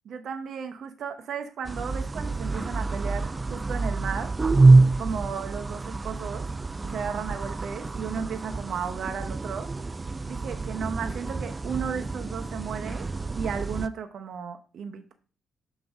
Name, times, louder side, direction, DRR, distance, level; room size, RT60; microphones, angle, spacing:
voice 1, 0.1-4.3 5.0-6.4 6.8-9.7 10.3-13.0 13.3-15.1, right 6 dB, 65° right, 6 dB, 0.8 m, -34 dB
sound 1, 1.6-13.9, right 3 dB, 20° right, 0.3 m, -26 dB
6.4 x 5.3 x 3.6 m, 0.37 s
cardioid pair, 90°, 0 cm